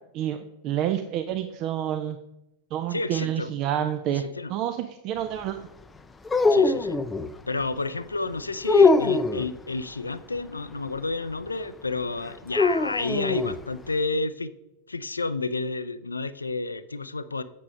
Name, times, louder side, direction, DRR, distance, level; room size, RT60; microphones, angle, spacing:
voice 1, 0.1-2.2 2.7-4.2 4.5-5.6, right 11 dB, 40° right, 8 dB, 0.5 m, -28 dB
voice 2, 2.9-3.5 4.1-4.5 6.5-7.0 7.4-14.5 14.9-17.4, left 3 dB, 80° left, 14 dB, 0.5 m, -30 dB
sound 1, 6.2-7.3 8.6-9.5 12.5-13.6, left 3 dB, 15° left, 0.5 m, -21 dB
8.5 x 6.2 x 5.3 m, 0.89 s
figure-of-eight pair, 90°, 0 cm